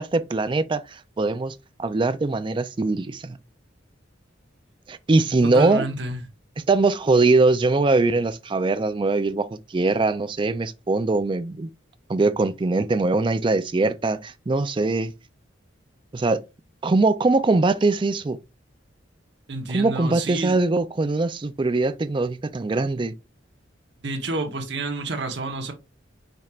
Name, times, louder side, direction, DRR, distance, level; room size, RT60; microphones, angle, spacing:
voice 1, 0.0-3.4 4.9-5.8 6.7-11.7 12.1-15.1 16.1-16.4 16.8-18.4 19.7-23.1, right 3 dB, 25° right, 0.4 m, -22 dB
voice 2, 5.4-6.2 19.5-20.6 24.0-25.7, right 3 dB, 60° right, 1.0 m, -29 dB
5.2 x 4.3 x 2.4 m
head